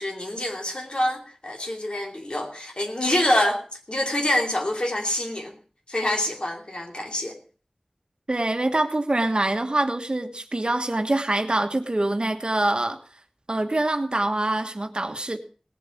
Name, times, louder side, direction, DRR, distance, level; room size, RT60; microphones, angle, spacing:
voice 1, 0.0-5.6 5.9-7.4, left 1 dB, 55° left, 2.8 m, -26 dB
voice 2, 8.3-13.0 13.5-15.4, right 2 dB, 50° right, 1.4 m, -25 dB
18.0 x 7.6 x 5.8 m
wide cardioid pair, 50°, 2 cm